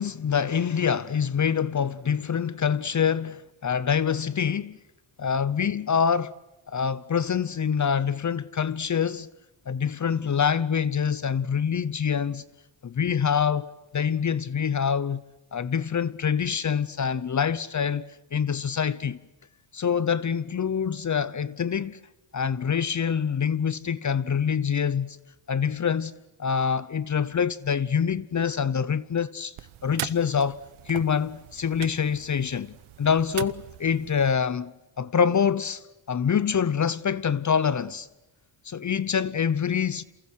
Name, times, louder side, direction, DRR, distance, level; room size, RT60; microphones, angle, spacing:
voice 1, 0.0-4.8 5.2-6.3 6.7-9.3 9.7-12.4 12.8-15.2 15.5-19.2 19.7-22.0 22.3-25.2 25.5-26.1 26.4-29.5 29.8-30.6 30.9-34.7 35.0-38.1 38.7-40.0, left 7 dB, 40° left, 0.9 m, -25 dB
sound 1, 29.6-34.3, right 14 dB, 85° right, 1.0 m, -40 dB
28.5 x 28.0 x 6.4 m
cardioid pair, 85°, 47 cm